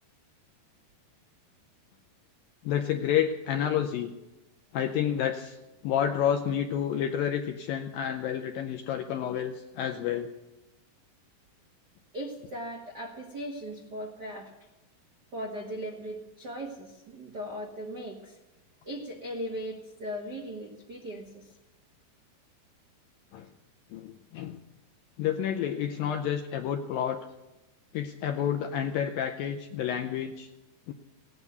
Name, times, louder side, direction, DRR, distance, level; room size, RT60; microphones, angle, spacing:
voice 1, 2.6-4.1 4.7-5.6 5.8-10.3 23.3-23.5 23.9-24.6 25.2-27.3 27.9-30.5 30.9-31.0, left 9 dB, 80° left, 6 dB, 2.0 m, -29 dB
voice 2, 12.1-14.5 15.3-18.4 18.8-21.5, equal, 70° right, 0 dB, 0.9 m, -38 dB
18.0 x 9.6 x 8.0 m, 1.0 s
omnidirectional pair, 4.8 m